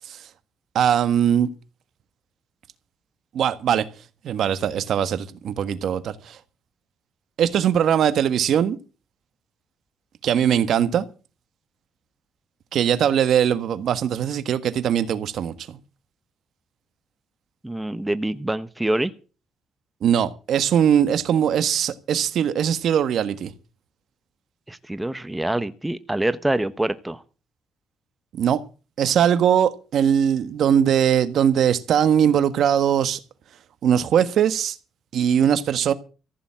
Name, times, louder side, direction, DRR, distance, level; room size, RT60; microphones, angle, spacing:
voice 1, 0.7-1.5 3.3-3.9 4.2-6.4 7.4-8.8 10.2-11.0 12.7-15.8 20.0-23.5 28.3-28.6 29.0-33.2 33.8-34.8 35.1-35.9, right 9 dB, 70° right, 1.4 m, -20 dB
voice 2, 17.6-19.1 24.7-27.2, right 1 dB, 10° right, 1.0 m, -25 dB
15.0 x 7.1 x 8.8 m
cardioid pair, 90°, 0 cm